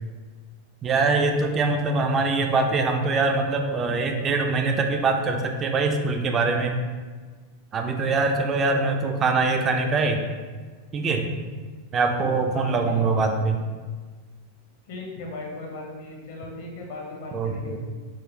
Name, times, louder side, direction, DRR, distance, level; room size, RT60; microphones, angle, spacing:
voice 1, 0.8-6.8 7.7-10.2 10.9-11.3 11.9-13.6 17.3-17.8, right 3 dB, 25° right, 4 dB, 0.4 m, -23 dB
voice 2, 8.5-9.1 12.5-13.0 14.9-17.8, left 2 dB, 55° left, -1 dB, 0.8 m, -37 dB
3.8 x 2.5 x 3.0 m, 1.4 s
figure-of-eight pair, 90°, 0 cm